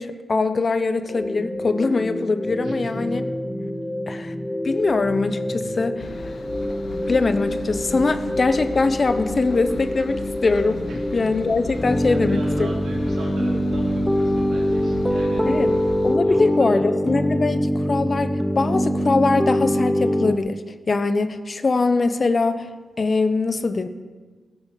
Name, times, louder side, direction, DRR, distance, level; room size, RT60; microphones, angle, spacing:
voice 1, 0.0-3.2 4.1-4.3 4.6-6.4 7.1-10.8 11.1-12.7 15.4-15.7 16.0-20.6 20.9-22.7 23.0-23.9, left 3 dB, 50° left, 10 dB, 1.0 m, -22 dB
sound 1, 1.1-20.4, equal, 5° left, 0.8 m, -24 dB
voice 2, 2.6-2.9 10.9-11.0 12.1-15.6 16.2-16.8, right 2 dB, 80° right, -2 dB, 3.4 m, -38 dB
Engine, 6.0-16.2, left 3 dB, 65° left, 1.2 m, -36 dB
14.0 x 7.8 x 7.5 m, 1.4 s
cardioid pair, 50°, 0 cm